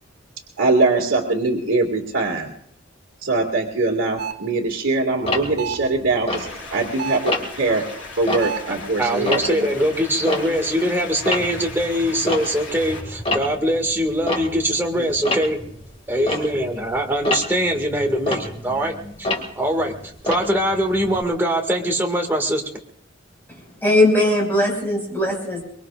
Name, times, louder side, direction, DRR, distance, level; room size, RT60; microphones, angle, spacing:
voice 1, 0.6-2.5 3.2-6.5 6.7-7.8 8.2-9.7 15.0-15.2 16.2-16.5, right 3 dB, 80° right, -5 dB, 2.3 m, -22 dB
sound 1, 4.2-4.5 5.6-6.0 7.0-7.4 8.4-8.8, right 7 dB, 55° right, 1.3 m, -30 dB
Tick-tock, 5.2-6.9 7.3-7.7 8.1-10.9 11.1-21.2, left 2 dB, 30° left, 2.1 m, -29 dB
sound 2, 6.3-13.0, left 3 dB, 65° left, 5.2 m, -37 dB
voice 2, 9.0-15.6 16.1-19.3 19.6-22.6, equal, 10° right, 1 dB, 2.0 m, -22 dB
voice 3, 23.8-25.6, left 1 dB, 10° left, -2 dB, 5.7 m, -19 dB
24.0 x 22.5 x 2.5 m, 0.68 s
head